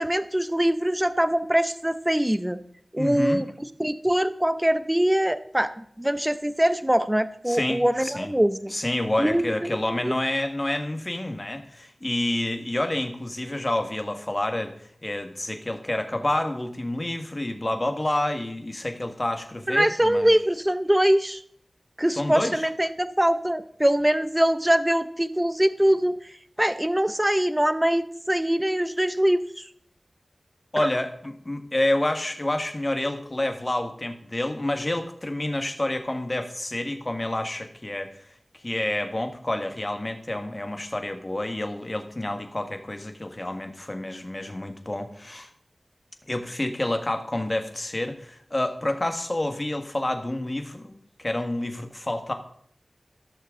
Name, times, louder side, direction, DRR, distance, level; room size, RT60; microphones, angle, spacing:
voice 1, 0.0-2.6 2.9-3.5 3.8-5.7 6.0-8.7 9.2-10.1 19.7-21.4 22.0-26.2 26.6-29.6 30.8-30.9, right 1 dB, 15° right, 13 dB, 0.6 m, -23 dB
voice 2, 3.0-3.4 7.5-8.3 8.7-14.7 15.0-20.3 22.2-22.7 30.7-38.1 38.5-45.5 46.3-52.3, left 1 dB, 35° left, 6 dB, 1.5 m, -28 dB
15.0 x 6.6 x 3.7 m, 0.65 s
cardioid pair, 40°, 0 cm